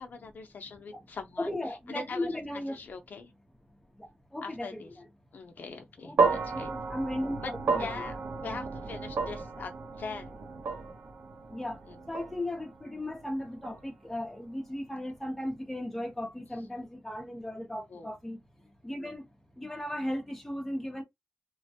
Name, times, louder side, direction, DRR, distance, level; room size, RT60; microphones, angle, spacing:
voice 1, 0.0-1.5 1.9-2.3 2.7-3.3 4.4-4.9 5.3-6.7 7.4-7.5 7.8-10.5 11.9-12.0 17.9-18.1, left 4 dB, 60° left, 0.6 m, -42 dB
voice 2, 1.4-2.8 4.3-5.1 6.0-8.0 8.5-8.6 11.5-11.8 12.1-18.4 18.8-19.2 19.6-21.0, left 1 dB, 5° left, 0.7 m, -36 dB
sound 1, 6.2-14.5, right 4 dB, 65° right, 0.9 m, -33 dB
3.1 x 2.1 x 2.7 m
wide cardioid pair, 160°, 3 cm